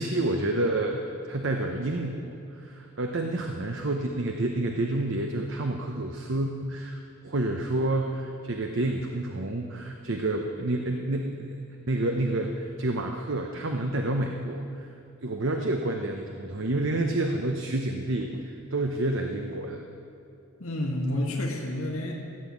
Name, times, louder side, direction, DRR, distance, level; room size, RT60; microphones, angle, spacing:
voice 1, 0.0-7.0 7.2-11.6 11.9-14.9 15.2-19.8, right 2 dB, 60° right, 3 dB, 0.9 m, -29 dB
voice 2, 20.6-22.1, left 1 dB, 85° left, -1 dB, 1.8 m, -29 dB
15.5 x 8.1 x 8.5 m, 2.7 s
head